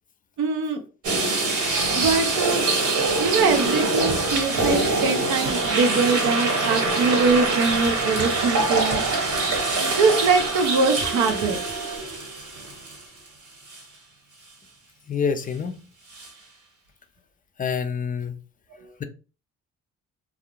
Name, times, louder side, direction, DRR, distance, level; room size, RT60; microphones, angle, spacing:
voice 1, 0.4-0.8 1.9-2.7 3.2-9.0 9.8-11.6 18.8-18.9, right 4 dB, 85° right, 0.6 m, -23 dB
sound 1, 1.0-13.3 13.7-13.8 16.1-16.3, right 3 dB, 70° right, 1.2 m, -24 dB
sound 2, 4.6-12.0, right 5 dB, 45° right, 0.8 m, -37 dB
voice 2, 15.1-15.8 17.6-18.3, left 6 dB, 30° left, 0.4 m, -26 dB
2.3 x 2.0 x 2.9 m
cardioid pair, 90°, 30 cm